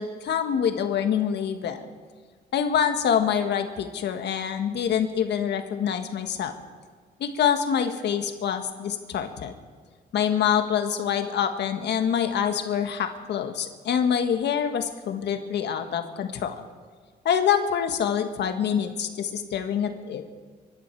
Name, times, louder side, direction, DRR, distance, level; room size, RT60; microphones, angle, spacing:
voice 1, 0.0-1.8 2.5-6.5 7.2-9.5 10.1-16.5 17.2-20.2, left 8 dB, 70° left, 7 dB, 1.5 m, -26 dB
24.5 x 12.0 x 4.6 m, 1.5 s
cardioid pair, 105°, 18 cm